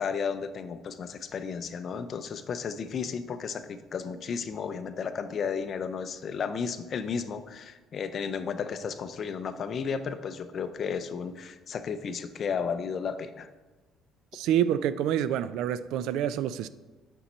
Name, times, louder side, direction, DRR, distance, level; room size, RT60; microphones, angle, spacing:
voice 1, 0.0-13.5, left 6 dB, 40° left, 0.4 m, -33 dB
voice 2, 14.3-16.7, right 10 dB, 80° right, 0.3 m, -27 dB
8.5 x 5.4 x 4.3 m
cardioid pair, 160°, 0 cm